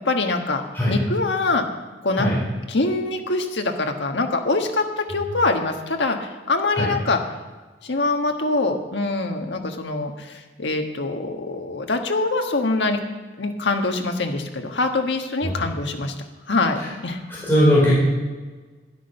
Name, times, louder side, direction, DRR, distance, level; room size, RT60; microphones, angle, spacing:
voice 1, 0.0-0.6 0.9-1.7 2.0-2.3 2.7-7.2 7.8-13.0 13.4-16.1 16.5-17.2, left 3 dB, 85° left, 4 dB, 1.5 m, -24 dB
voice 2, 17.4-17.9, equal, 15° left, -8 dB, 4.5 m, -18 dB
12.5 x 11.0 x 5.6 m, 1.3 s
head